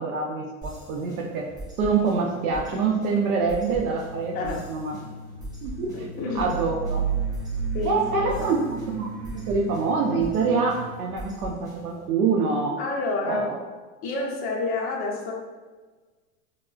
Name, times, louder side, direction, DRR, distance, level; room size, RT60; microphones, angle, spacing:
voice 1, 0.0-1.5 1.8-5.0 5.6-6.1 6.3-7.0 7.8-12.8 13.2-13.6, right 4 dB, 80° right, 1 dB, 0.6 m, -26 dB
sound 1, 0.6-12.1, right 1 dB, 10° right, 1.1 m, -42 dB
sound 2, 3.6-11.0, right 3 dB, 55° right, 0.9 m, -40 dB
voice 2, 4.3-4.7 5.9-6.5 7.7-8.5 12.8-13.6 14.0-15.3, left 3 dB, 20° left, -1 dB, 0.5 m, -29 dB
sound 3, 6.4-9.1, right 7 dB, 70° left, 0.6 m, -30 dB
4.6 x 2.1 x 2.4 m, 1.3 s
hypercardioid pair, 125°, 43 cm